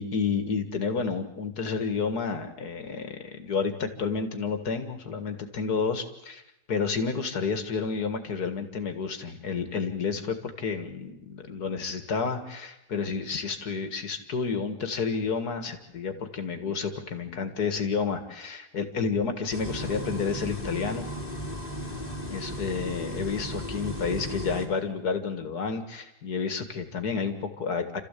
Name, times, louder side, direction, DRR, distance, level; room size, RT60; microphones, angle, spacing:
voice 1, 0.0-6.4 6.7-21.1 22.3-28.0, left 5 dB, 70° left, 8 dB, 2.4 m, -30 dB
sound 1, 19.5-24.6, equal, 25° left, 3.1 m, -35 dB
29.0 x 14.5 x 8.4 m, 0.85 s
omnidirectional pair, 1.7 m